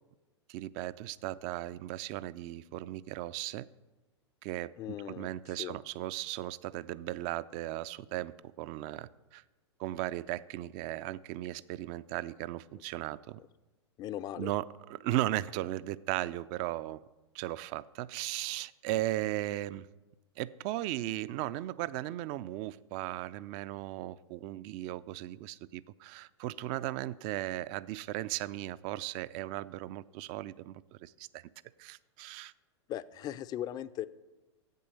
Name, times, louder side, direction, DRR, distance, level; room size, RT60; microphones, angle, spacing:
voice 1, 0.5-3.7 4.4-4.7 5.1-9.4 9.8-13.4 14.4-17.0 17.3-19.9 20.4-31.4 31.8-32.5, right 15 dB, 40° right, 18 dB, 0.4 m, -36 dB
voice 2, 4.8-5.8 14.0-14.5 32.9-34.1, left 12 dB, 25° left, 17 dB, 0.4 m, -39 dB
9.2 x 8.0 x 6.6 m, 1.1 s
figure-of-eight pair, 95°, 15 cm